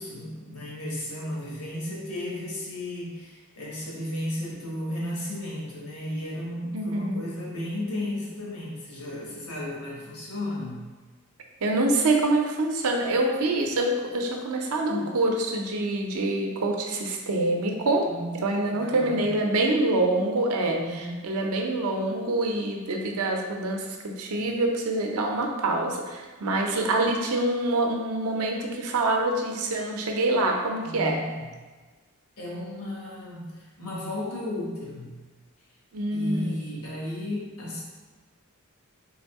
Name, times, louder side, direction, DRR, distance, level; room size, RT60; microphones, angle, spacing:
voice 1, 0.0-10.8 14.9-15.1 18.1-19.3 20.7-21.2 30.8-31.5 32.4-35.2 36.1-37.8, left 1 dB, 85° left, -5 dB, 1.1 m, -34 dB
voice 2, 6.7-7.2 11.6-18.1 18.4-31.2 35.9-36.7, right 2 dB, 80° right, 2 dB, 0.5 m, -26 dB
3.5 x 2.6 x 3.5 m, 1.3 s
head